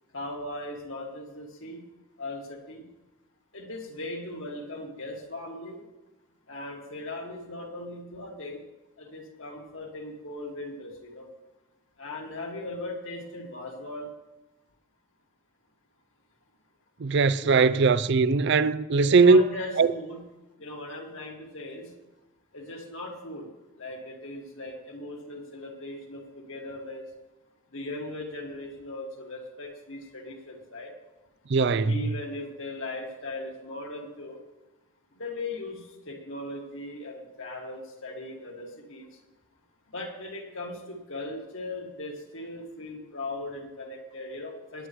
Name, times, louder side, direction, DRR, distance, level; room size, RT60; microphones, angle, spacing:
voice 1, 0.1-1.8 2.2-2.9 3.5-5.8 6.5-8.6 9.0-11.3 12.0-14.1 17.4-17.7 19.0-20.2 20.6-21.9 22.5-23.5 23.8-27.1 27.7-30.9 31.9-34.4 35.1-39.1 39.9-44.9, left 2 dB, 60° left, 2.2 m, -38 dB
voice 2, 17.0-19.4 19.8-19.9 31.5-32.1, right 4 dB, 55° right, 0.4 m, -20 dB
18.0 x 9.7 x 3.2 m
head